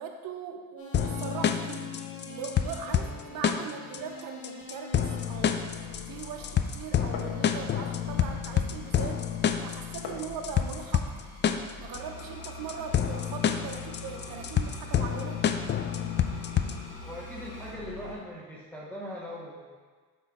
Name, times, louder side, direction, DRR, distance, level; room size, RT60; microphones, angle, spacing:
voice 1, 0.0-1.9 2.2-9.3 9.6-11.3 11.8-15.4, right 6 dB, 70° right, 3 dB, 0.8 m, -40 dB
sound 1, 0.8-18.2, left 2 dB, 75° left, 1.9 m, -45 dB
sound 2, 0.9-16.9, left 8 dB, 30° left, 0.4 m, -29 dB
Glass, 5.2-10.3, left 4 dB, 60° left, 1.1 m, -46 dB
voice 2, 17.0-19.8, equal, 5° left, -6 dB, 0.9 m, -40 dB
7.8 x 3.1 x 5.7 m, 1.4 s
cardioid pair, 110°, 35 cm